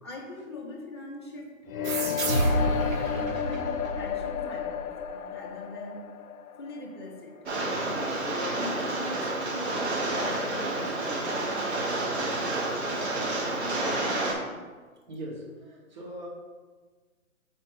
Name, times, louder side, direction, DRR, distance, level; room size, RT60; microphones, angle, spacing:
voice 1, 0.0-6.2 6.6-7.5 7.9-11.2 11.6-12.3 12.8-13.2 13.5-14.3, left 2 dB, 20° left, -3 dB, 0.5 m, -42 dB
sound 1, 1.7-7.6, left 8 dB, 75° left, 0.5 m, -32 dB
sound 2, 1.8-5.1, right 2 dB, 70° right, 1.0 m, -29 dB
Rain, 7.5-14.3, right 2 dB, 50° right, 1.3 m, -29 dB
voice 2, 14.9-16.3, right 1 dB, 30° right, -2 dB, 1.2 m, -41 dB
4.3 x 4.2 x 5.3 m, 1.4 s
figure-of-eight pair, 145°, 42 cm